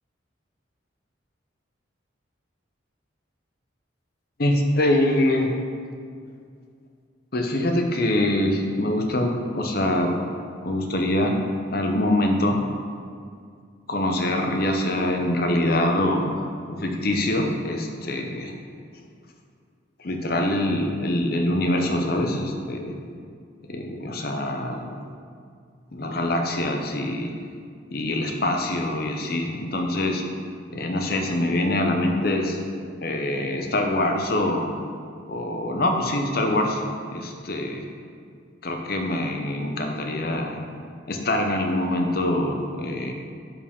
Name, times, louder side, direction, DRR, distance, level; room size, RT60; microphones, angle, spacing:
voice 1, 4.4-5.5 7.3-10.2 10.6-11.4 11.7-12.6 13.9-16.3 16.7-18.5 20.0-22.9 23.7-24.9 25.9-27.3 27.9-30.2 30.7-32.6 33.0-34.7 35.3-36.8 37.1-37.8 38.6-40.6 41.1-43.1, left 1 dB, 50° left, 3 dB, 0.8 m, -24 dB
10.5 x 4.8 x 3.6 m, 2.2 s
head